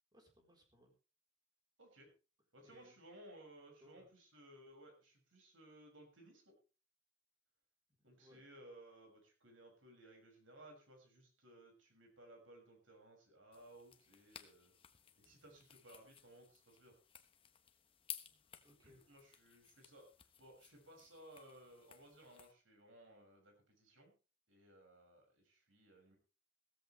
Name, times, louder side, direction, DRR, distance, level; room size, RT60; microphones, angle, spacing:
voice 1, 0.1-0.9 2.6-3.0 3.8-4.1 8.1-8.4 18.3-19.1, left 1 dB, 20° right, 2 dB, 4.1 m, -66 dB
voice 2, 1.8-2.1 2.5-6.5 8.0-14.7 15.2-17.0 18.8-20.1 20.4-24.1 24.5-26.2, right 1 dB, 90° right, 3 dB, 6.4 m, -60 dB
sound 1, 13.5-22.5, left 9 dB, 30° left, 1.2 m, -57 dB
16.0 x 14.0 x 3.3 m, 0.33 s
head